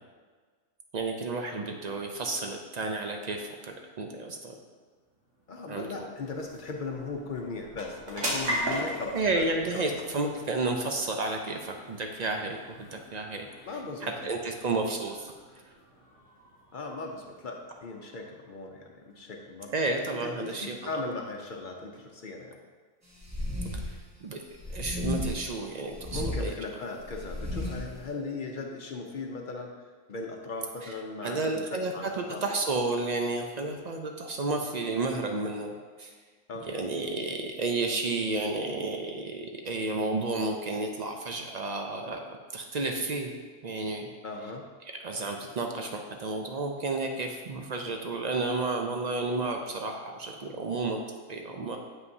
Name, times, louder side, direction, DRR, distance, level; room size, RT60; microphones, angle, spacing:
voice 1, 0.9-4.5 5.7-6.1 9.1-13.5 14.0-15.3 19.7-20.7 24.2-24.4 24.7-26.5 30.8-30.9 31.2-36.1 36.6-43.3 43.6-44.1 45.0-51.0 51.3-51.8, right 3 dB, 60° right, 3 dB, 0.4 m, -31 dB
sound 1, 4.8-19.6, equal, 75° right, 1.8 m, -40 dB
voice 2, 5.5-9.9 13.6-14.3 16.7-19.8 20.2-22.6 26.1-29.7 30.1-32.5 36.5-36.8 44.2-44.6, left 3 dB, 50° left, 2 dB, 0.6 m, -38 dB
sound 2, 23.2-24.0 24.5-25.5 25.9-26.4 27.0-27.9, left 1 dB, 15° right, 0.7 m, -33 dB
7.9 x 5.5 x 2.7 m, 1.5 s
omnidirectional pair, 1.3 m